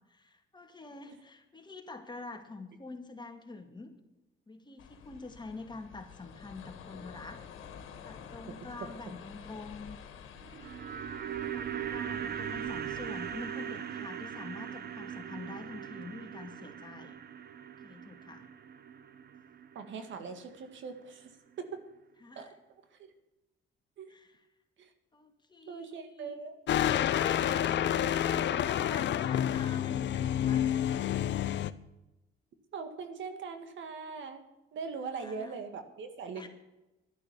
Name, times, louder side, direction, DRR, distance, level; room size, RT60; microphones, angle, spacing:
voice 1, 0.1-3.9 4.5-7.4 8.0-10.0 11.5-17.2 17.8-18.5 22.2-22.5 24.1-24.4 25.1-26.4 26.9-30.8 35.0-35.7 36.4-36.5, left 3 dB, 20° left, 5 dB, 2.2 m, -46 dB
sound 1, 4.8-13.4, left 7 dB, 85° left, 1.8 m, -50 dB
sound 2, 10.4-20.6 20.9-21.0, right 9 dB, 55° right, 1.0 m, -40 dB
voice 2, 19.7-21.8 22.4-22.5 22.9-23.0 24.0-24.1 24.8-24.9 25.7-26.9 32.7-34.4 34.7-36.5, right 5 dB, 70° right, 8 dB, 1.8 m, -41 dB
sound 3, 26.7-31.7, left 10 dB, 65° left, 0.7 m, -29 dB
11.5 x 11.5 x 6.9 m, 0.99 s
cardioid pair, 90°, 20 cm